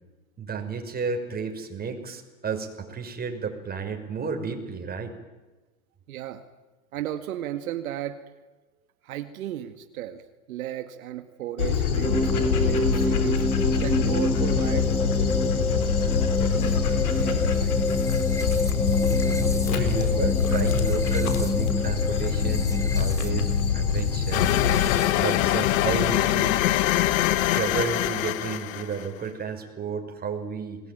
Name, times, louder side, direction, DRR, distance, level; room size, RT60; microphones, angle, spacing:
voice 1, 0.4-5.1 12.9-13.0 13.6-13.7 19.3-24.5 25.2-26.7 27.4-30.8, right 5 dB, 20° right, 4 dB, 5.5 m, -32 dB
voice 2, 6.1-6.4 6.9-8.2 9.0-10.2 10.5-13.4 13.8-17.8, right 12 dB, 75° right, 8 dB, 2.0 m, -35 dB
Dog, 11.6-25.0, left 6 dB, 85° left, 4.0 m, -25 dB
sound 1, 12.0-25.6, left 3 dB, 5° left, 1.7 m, -27 dB
Space Station, 24.3-29.1, left 15 dB, 65° left, 1.5 m, -23 dB
28.5 x 21.0 x 9.4 m, 1.2 s
hypercardioid pair, 110°, 42 cm